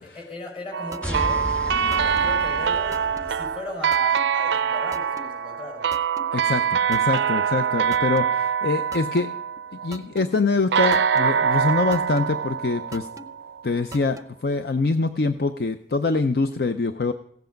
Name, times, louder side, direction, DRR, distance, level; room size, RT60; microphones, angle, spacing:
voice 1, 0.0-1.5 2.0-5.9, left 2 dB, 35° left, 1 dB, 4.9 m, -37 dB
sound 1, 0.7-9.9 10.7-13.6, right 7 dB, 80° right, 0.4 m, -24 dB
sound 2, 0.9-1.3 1.9-2.3 2.9-3.3 3.9-4.3 4.9-5.3 5.9-6.3 6.9-7.3 7.9-8.3 8.9-9.3 9.9-10.3 10.9-11.3 11.9-12.3 12.9-13.3 13.9-14.3, right 1 dB, 20° right, 0.6 m, -39 dB
sound 3, 1.0-3.6, equal, 5° left, 1.6 m, -33 dB
voice 2, 6.3-9.3 9.8-13.1 13.6-17.1, left 3 dB, 60° left, 9 dB, 0.5 m, -24 dB
16.0 x 8.1 x 5.1 m, 0.67 s
head